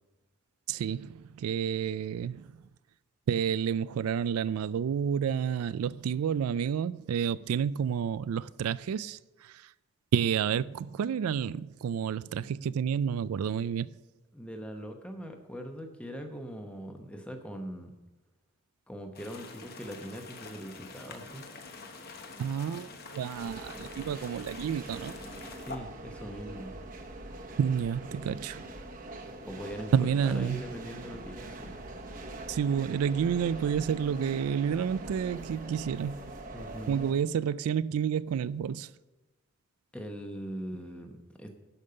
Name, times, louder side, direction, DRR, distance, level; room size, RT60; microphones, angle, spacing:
voice 1, 0.7-2.5 3.3-9.7 10.1-13.9 22.4-25.1 27.6-28.7 29.9-30.6 32.5-36.3 36.9-38.9, right 7 dB, 90° right, 0.3 m, -30 dB
voice 2, 14.3-17.9 18.9-21.5 25.6-26.7 29.5-29.9 30.2-31.8 36.5-37.1 39.9-41.6, equal, 5° left, 0.9 m, -41 dB
sound 1, 19.1-25.8, left 4 dB, 45° left, 1.0 m, -46 dB
sound 2, 23.3-37.1, right 2 dB, 40° right, 1.0 m, -43 dB
11.5 x 5.4 x 6.7 m
head